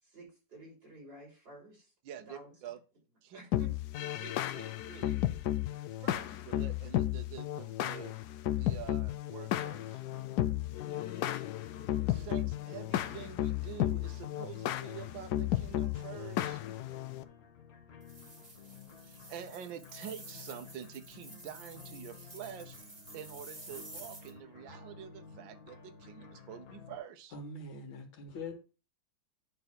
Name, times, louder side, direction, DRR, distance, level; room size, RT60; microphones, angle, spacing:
voice 1, 0.0-1.9 2.3-2.5 3.3-3.7, equal, 50° right, 5.7 m, -52 dB
voice 2, 2.0-2.8 3.2-3.7 4.2-5.2 6.0-8.1 8.5-10.0 12.1-16.6 19.0-22.8 23.1-27.4, right 9 dB, 75° right, 1.5 m, -47 dB
sound 1, 3.5-17.2, left 13 dB, 70° left, 1.0 m, -34 dB
sound 2, 10.0-27.0, left 6 dB, 50° left, 1.7 m, -52 dB
sound 3, 18.0-24.3, right 2 dB, 20° right, 1.8 m, -51 dB
voice 3, 27.3-28.5, left 3 dB, 85° left, 2.3 m, -43 dB
9.4 x 3.4 x 6.0 m
omnidirectional pair, 2.1 m